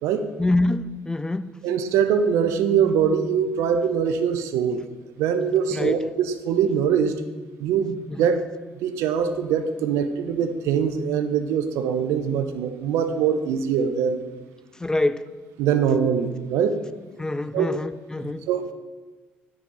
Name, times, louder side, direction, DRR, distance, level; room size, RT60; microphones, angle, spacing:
voice 1, 0.4-1.5 5.7-6.0 8.2-8.3 14.8-15.3 17.2-18.5, left 2 dB, 15° left, 14 dB, 0.3 m, -25 dB
voice 2, 1.6-4.8 5.2-7.1 7.6-8.4 8.7-14.2 15.6-16.8 17.5-17.7 18.2-18.7, right 7 dB, 70° right, 9 dB, 0.5 m, -23 dB
9.4 x 4.1 x 3.8 m, 1.3 s
hypercardioid pair, 50°, 5 cm